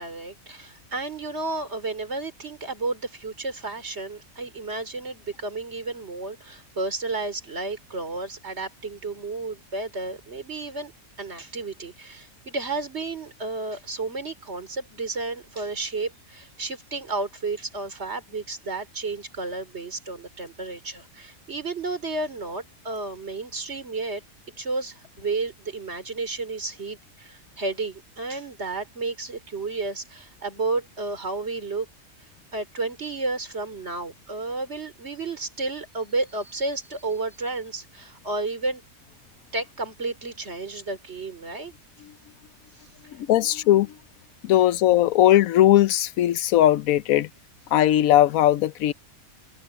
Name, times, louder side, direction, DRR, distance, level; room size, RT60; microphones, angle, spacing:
voice 1, 0.0-10.9 11.2-24.2 24.6-31.9 32.5-38.8 39.5-41.7, right 3 dB, 50° right, 4.1 m, -32 dB
voice 2, 43.1-44.0 44.4-47.3 47.7-48.9, left 13 dB, 80° left, 1.1 m, -19 dB
omnidirectional pair, 1.5 m